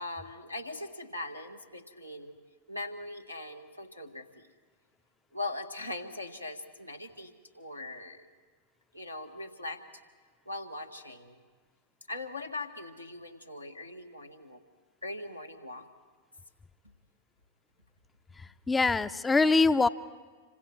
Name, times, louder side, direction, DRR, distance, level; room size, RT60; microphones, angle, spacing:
voice 1, 0.0-2.4 2.7-4.5 5.3-8.3 8.9-9.8 10.5-11.4 12.1-14.6 15.0-15.9, left 2 dB, 85° left, 2 dB, 1.8 m, -40 dB
voice 2, 18.4-19.9, left 3 dB, 10° left, 13 dB, 0.7 m, -24 dB
27.0 x 26.0 x 4.6 m, 1.5 s
figure-of-eight pair, 90°, 0 cm